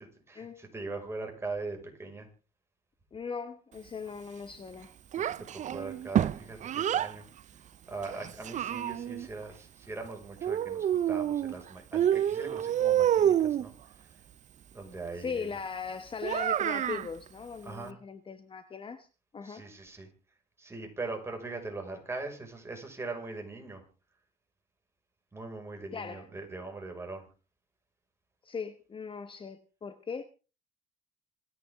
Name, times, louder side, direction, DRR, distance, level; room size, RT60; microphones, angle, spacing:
voice 1, 0.0-2.3 5.2-7.2 7.9-14.2 14.7-15.5 17.6-18.0 19.4-20.1 20.6-23.8 25.3-27.3, right 3 dB, 15° right, 5.7 m, -41 dB
voice 2, 3.1-4.9 15.2-19.1 19.3-19.7 25.9-26.3 28.4-30.3, left 5 dB, 30° left, 1.3 m, -39 dB
Child speech kid speaking, 5.1-7.1 8.0-9.3 10.4-11.6 11.9-13.7 16.2-17.1, right 10 dB, 45° right, 0.6 m, -28 dB
26.5 x 9.7 x 3.7 m
cardioid pair, 110°, 17 cm